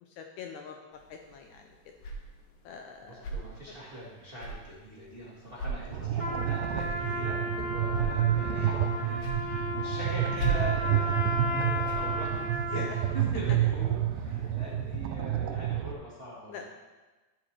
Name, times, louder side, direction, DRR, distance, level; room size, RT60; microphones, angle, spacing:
voice 1, 0.0-0.8 1.1-1.7 2.7-3.4 5.9-6.1 9.1-9.4 12.7-12.9 16.5-16.7, left 7 dB, 85° left, 3 dB, 1.7 m, -45 dB
sound 1, 0.9-15.0, right 2 dB, 65° left, 2.4 m, -41 dB
voice 2, 3.0-12.4 12.7-16.7, equal, 55° right, -7 dB, 0.6 m, -42 dB
sound 2, 5.9-15.9, right 11 dB, 80° right, 2.0 m, -29 dB
Trumpet, 6.1-13.2, left 1 dB, 20° right, 1.0 m, -34 dB
11.5 x 7.5 x 3.2 m, 1.2 s
omnidirectional pair, 4.1 m